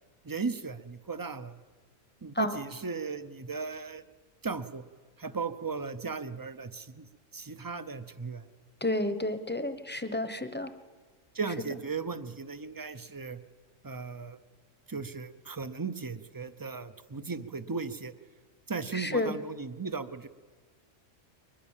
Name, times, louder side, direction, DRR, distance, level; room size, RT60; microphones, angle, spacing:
voice 1, 0.2-1.6 2.2-4.0 4.4-4.8 5.2-7.1 7.3-8.5 11.3-13.4 13.8-14.4 14.9-18.1 18.7-20.3, right 4 dB, 25° right, 12 dB, 0.5 m, -36 dB
voice 2, 8.8-10.7 18.9-19.3, left 1 dB, 10° left, 10 dB, 0.9 m, -30 dB
22.0 x 20.5 x 7.3 m, 1.5 s
omnidirectional pair, 1.3 m